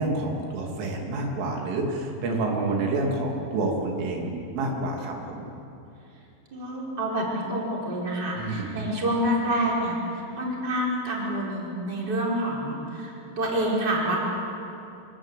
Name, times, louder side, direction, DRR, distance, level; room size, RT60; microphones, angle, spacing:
voice 1, 0.0-5.5 8.3-8.8, right 2 dB, 90° right, 0 dB, 5.5 m, -28 dB
voice 2, 6.5-14.2, right 1 dB, 20° right, -4 dB, 5.1 m, -27 dB
25.5 x 23.0 x 8.4 m, 2.8 s
omnidirectional pair, 5.5 m